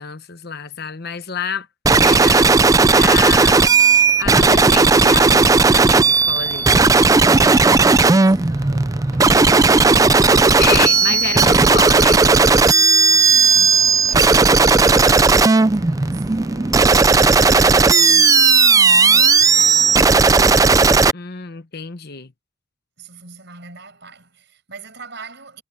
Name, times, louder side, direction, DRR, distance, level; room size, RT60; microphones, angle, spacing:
voice 1, 0.0-1.7 2.0-2.5 2.9-3.8 4.2-6.9 10.4-12.4 21.1-22.3, left 6 dB, 50° left, 1.1 m, -28 dB
sound 1, 1.8-21.1, right 4 dB, 15° right, 0.4 m, -14 dB
sound 2, 2.7-21.0, left 1 dB, 20° left, 1.5 m, -45 dB
voice 2, 7.5-10.1 13.5-17.2 17.7-20.7 23.0-25.6, right 4 dB, 60° right, 7.2 m, -42 dB
sound 3, 11.1-11.5, right 1 dB, 80° right, 2.5 m, -38 dB
head